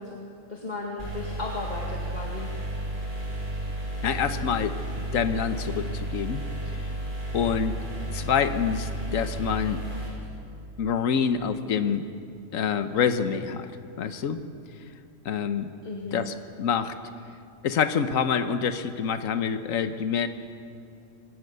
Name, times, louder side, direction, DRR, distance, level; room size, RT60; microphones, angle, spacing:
voice 1, 0.0-2.5 15.8-16.2, left 2 dB, 35° left, -2 dB, 2.0 m, -36 dB
sound 1, 1.0-10.1, right 1 dB, 40° right, 6.1 m, -33 dB
voice 2, 4.0-4.7 5.1-6.4 7.3-7.8 8.1-9.8 10.8-12.1 12.5-13.7 14.0-14.4 15.2-15.7 16.1-16.9 17.6-20.3, left 7 dB, 85° left, 9 dB, 1.3 m, -26 dB
24.5 x 17.5 x 6.8 m, 2.6 s
omnidirectional pair, 1.4 m